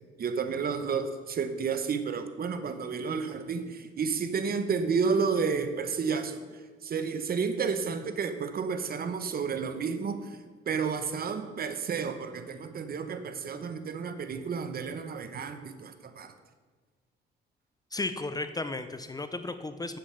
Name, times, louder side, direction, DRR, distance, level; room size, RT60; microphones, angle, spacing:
voice 1, 0.2-10.4 10.7-16.3, right 5 dB, 50° right, 10 dB, 0.9 m, -31 dB
voice 2, 17.9-20.0, left 2 dB, 20° left, 10 dB, 0.6 m, -34 dB
8.5 x 7.7 x 5.7 m, 1.5 s
cardioid pair, 90°, 20 cm